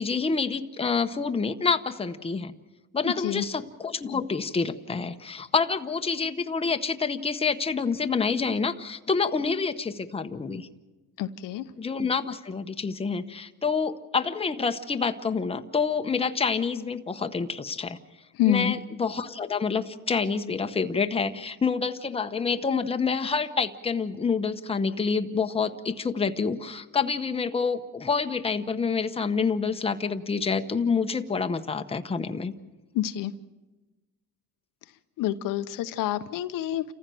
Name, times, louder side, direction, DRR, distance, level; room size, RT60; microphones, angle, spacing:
voice 1, 0.0-2.5 2.9-10.7 11.8-18.0 18.4-32.5, left 5 dB, 15° left, 7 dB, 0.9 m, -27 dB
voice 2, 3.0-3.4 11.2-11.6 18.4-18.7 32.9-33.3 35.2-36.8, left 12 dB, 80° left, 10 dB, 0.9 m, -27 dB
28.5 x 15.0 x 7.7 m, 1.2 s
cardioid pair, 105°, 32 cm